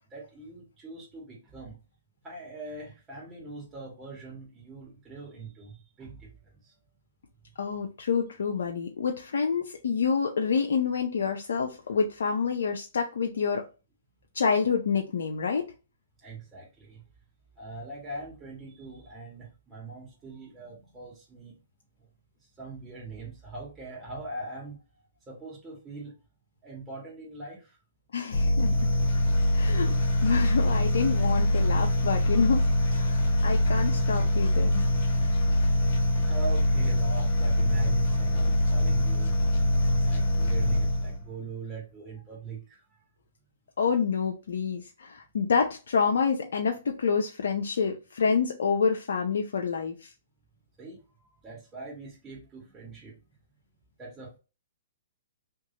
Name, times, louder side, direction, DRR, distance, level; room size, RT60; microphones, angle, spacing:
voice 1, 0.1-1.7 2.2-6.3 6.6-6.7 16.2-17.0 17.6-21.6 22.6-24.8 25.3-26.1 26.6-27.8 36.1-42.8 50.8-51.0 51.4-53.2 54.0-54.4, right 3 dB, 15° right, 1.9 m, -42 dB
voice 2, 7.6-13.7 14.3-15.7 28.1-28.9 29.5-29.9 30.2-32.7 32.9-34.9 43.8-50.1, left 5 dB, 75° left, 0.6 m, -27 dB
sound 1, 28.3-41.3, left 1 dB, 50° left, 1.5 m, -24 dB
3.6 x 3.0 x 2.8 m
hypercardioid pair, 135°, 0 cm